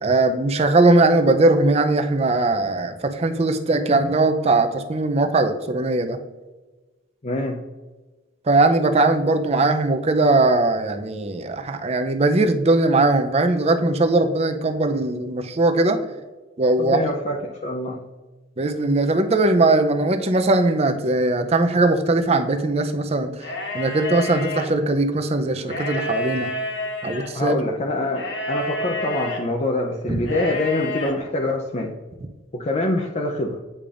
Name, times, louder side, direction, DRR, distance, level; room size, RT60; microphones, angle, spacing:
voice 1, 0.0-6.2 8.5-16.0 16.6-17.0 18.6-23.5 23.7-26.5 27.0-27.6 30.1-30.2, right 2 dB, 30° right, 8 dB, 0.5 m, -20 dB
voice 2, 7.2-7.6 16.8-18.0 27.3-31.9 32.5-33.6, left 2 dB, 35° left, 0 dB, 0.5 m, -25 dB
sound 1, 23.4-24.7 25.6-27.3 28.1-29.4 30.2-31.1, left 1 dB, 60° left, 1.2 m, -29 dB
8.5 x 5.0 x 2.5 m, 1.2 s
head